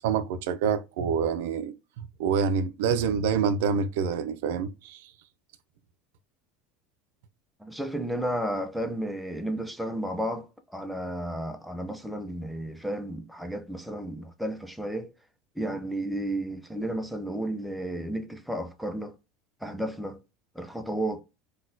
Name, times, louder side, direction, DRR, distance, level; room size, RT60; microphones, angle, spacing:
voice 1, 0.0-5.0, right 6 dB, 85° right, 0.4 m, -27 dB
voice 2, 7.6-15.1 15.6-19.1 19.6-20.2 20.6-21.2, right 1 dB, ahead, 0.4 m, -32 dB
3.9 x 2.2 x 2.5 m
cardioid pair, 155°, 0 cm